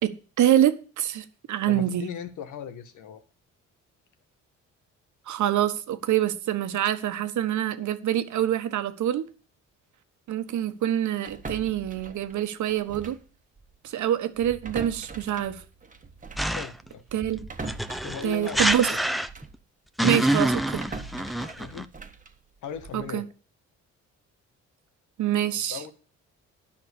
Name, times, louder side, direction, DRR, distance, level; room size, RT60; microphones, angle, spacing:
voice 1, 0.0-2.1 5.3-9.3 10.3-13.2 13.8-15.6 17.1-17.4 18.2-19.0 20.0-20.8 22.9-23.2 25.2-25.8, right 11 dB, 75° right, 10 dB, 1.3 m, -25 dB
voice 2, 1.7-3.2 16.4-17.0 18.0-18.7 21.6-21.9 22.6-23.3 25.7-25.9, left 8 dB, 80° left, 9 dB, 1.6 m, -38 dB
sound 1, 11.3-13.3 13.6-13.8 14.3-19.6 20.0-23.1, right 3 dB, 25° right, 1.4 m, -42 dB
sound 2, 16.4-16.9 17.6-19.6 20.0-21.9, right 1 dB, ahead, 0.7 m, -26 dB
10.5 x 5.8 x 8.3 m, 0.37 s
cardioid pair, 90°, 30 cm